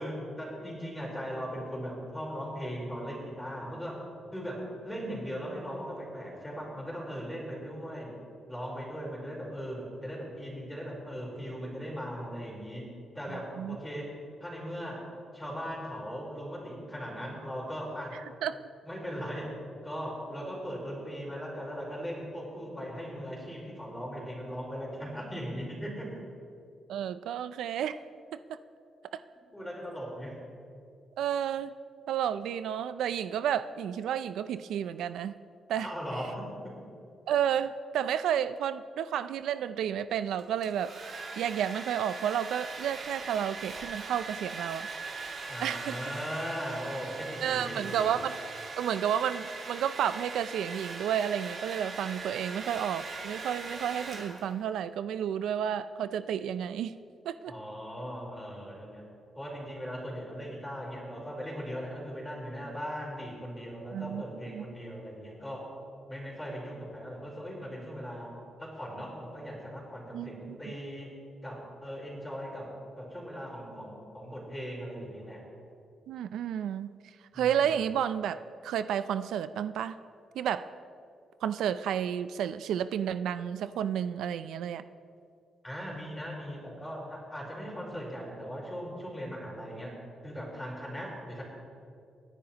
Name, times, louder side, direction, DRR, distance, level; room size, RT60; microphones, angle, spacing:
voice 1, 0.0-4.0 4.3-8.1 8.5-12.9 13.1-14.1 14.4-15.0 15.3-18.1 18.9-19.5 19.8-26.2 29.5-30.4 35.8-36.7 45.5-48.1 57.5-59.0 59.3-65.7 66.1-68.3 68.6-71.1 71.4-72.7 73.0-75.4 77.3-77.8 85.6-89.9 90.2-91.4, equal, 10° left, -3 dB, 3.9 m, -39 dB
voice 2, 26.9-28.0 28.5-28.6 29.1-29.2 31.2-31.7 32.1-35.3 35.7-35.9 37.3-40.9 41.4-44.9 45.6-46.0 47.4-48.4 48.8-56.9 57.3-57.5 63.9-64.2 64.5-64.7 70.1-70.7 76.1-76.9 77.3-80.0 80.4-80.7 81.4-84.8, right 9 dB, 90° right, 13 dB, 0.4 m, -31 dB
Domestic sounds home sounds, 40.4-54.7, right 4 dB, 55° right, 2.3 m, -40 dB
27.5 x 10.5 x 2.9 m, 2.4 s
cardioid pair, 130°, 0 cm